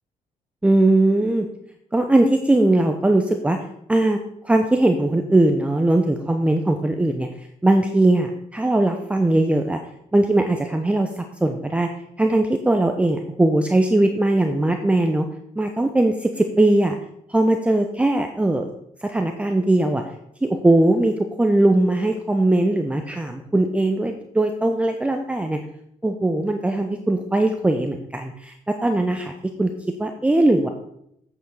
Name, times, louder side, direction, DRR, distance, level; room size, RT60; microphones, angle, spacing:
voice 1, 0.6-1.5 1.9-3.6 3.9-4.2 4.4-7.3 7.6-9.8 10.1-11.9 12.2-15.3 15.6-17.0 17.3-18.7 19.0-20.0 20.4-25.6 26.0-28.5 28.8-29.3 29.6-29.7 30.0-30.7, right 2 dB, 10° right, 4 dB, 0.8 m, -20 dB
7.9 x 7.0 x 6.4 m, 0.75 s
cardioid pair, 120°, 14 cm